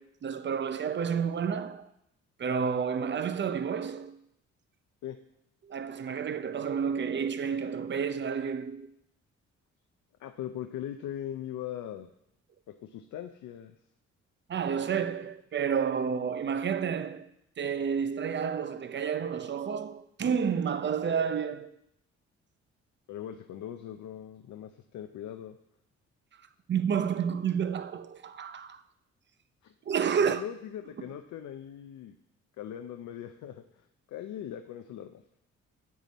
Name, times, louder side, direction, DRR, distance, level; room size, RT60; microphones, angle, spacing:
voice 1, 0.0-1.9 2.4-4.2 5.6-8.9 14.5-17.3 17.6-21.7 26.7-28.8 29.9-30.4, right 7 dB, 40° right, 0.7 m, -30 dB
voice 2, 10.2-12.1 12.7-13.7 23.1-25.5 29.6-29.7 30.2-32.1 32.6-35.2, left 10 dB, 75° left, 0.6 m, -40 dB
9.4 x 7.6 x 4.1 m
cardioid pair, 95°, 30 cm